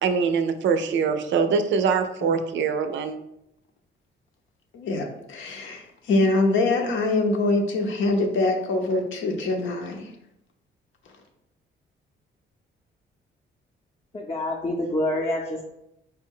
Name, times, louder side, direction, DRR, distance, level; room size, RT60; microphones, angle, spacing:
voice 1, 0.0-3.2, right 5 dB, 70° right, 9 dB, 0.5 m, -23 dB
voice 2, 4.7-10.0, left 2 dB, 75° left, 3 dB, 0.7 m, -24 dB
voice 3, 14.1-15.6, left 1 dB, 25° left, -2 dB, 0.6 m, -27 dB
4.3 x 2.2 x 3.6 m, 0.81 s
cardioid pair, 90°, 20 cm